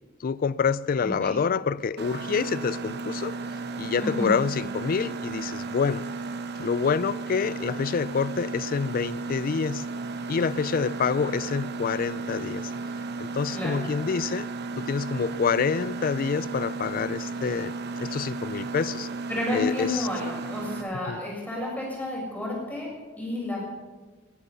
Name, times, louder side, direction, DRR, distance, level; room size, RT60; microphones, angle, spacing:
voice 1, 0.2-3.3 3.8-6.0 6.6-9.8 10.3-12.7 13.2-14.5 14.8-17.7 18.0-19.1 19.5-20.1 21.1-21.2, left 5 dB, 45° left, 0.4 m, -27 dB
voice 2, 1.0-1.3 4.0-4.3 13.5-13.8 19.3-23.6, left 1 dB, 10° left, 6.5 m, -31 dB
Mechanisms, 2.0-20.8, right 3 dB, 55° right, 1.0 m, -34 dB
20.5 x 11.0 x 5.6 m
head